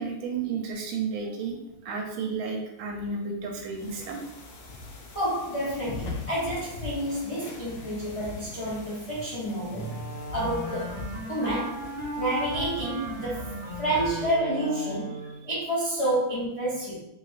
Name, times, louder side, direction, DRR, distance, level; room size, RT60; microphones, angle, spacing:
voice 1, 0.0-1.6 1.8-4.2 9.7-10.1 15.2-15.5, right 4 dB, 80° right, 1 dB, 1.4 m, -32 dB
sound 1, 3.7-14.4, left 3 dB, 90° left, 0.8 m, -41 dB
voice 2, 5.1-9.9 10.3-11.0 11.3-11.8 12.2-13.5 13.8-15.1 15.5-16.9, right 1 dB, 55° left, -9 dB, 0.3 m, -29 dB
Wind instrument woodwind instrument, 9.7-15.5, right 1 dB, 30° right, 0.7 m, -37 dB
3.3 x 3.1 x 2.4 m, 0.85 s
omnidirectional pair, 2.3 m